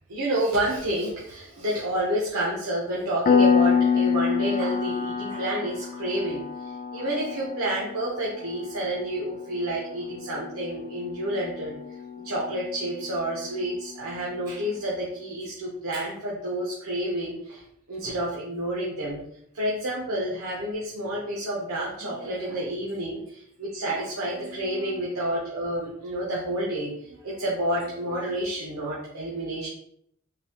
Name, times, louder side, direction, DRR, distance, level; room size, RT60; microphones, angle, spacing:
voice 1, 0.1-11.7 12.2-17.6 17.9-19.2 19.5-29.7, right 1 dB, 80° right, -5 dB, 0.9 m, -29 dB
Piano, 3.3-13.6, left 6 dB, 40° left, 0.3 m, -27 dB
3.9 x 2.8 x 2.9 m, 0.70 s
head